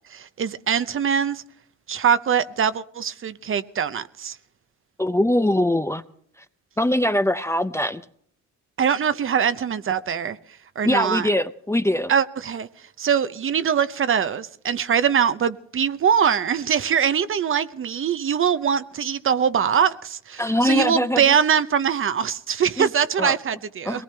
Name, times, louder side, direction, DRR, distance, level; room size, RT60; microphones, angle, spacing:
voice 1, 0.1-1.4 1.9-4.4 8.8-10.4 10.8-11.3 12.1-12.7 13.0-24.0, right 7 dB, 45° right, 0.7 m, -22 dB
voice 2, 5.0-6.0 6.8-8.0 10.8-12.1 20.4-21.3 22.8-22.9 23.2-23.3 23.9-24.0, left 1 dB, 10° left, 0.6 m, -22 dB
22.0 x 18.5 x 3.4 m
cardioid pair, 90°, 30 cm